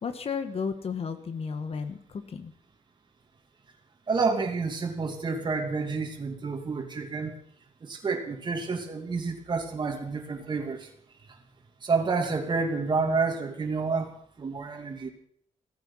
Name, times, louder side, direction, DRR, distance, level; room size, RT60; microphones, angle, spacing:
voice 1, 0.0-2.5, left 5 dB, 50° left, 9 dB, 1.5 m, -33 dB
voice 2, 4.1-7.3 7.8-10.9 11.3-11.4 11.8-14.1 14.4-15.1, right 4 dB, 35° right, 2 dB, 2.7 m, -29 dB
16.5 x 14.5 x 5.7 m, 0.63 s
wide cardioid pair, 155°, 13 cm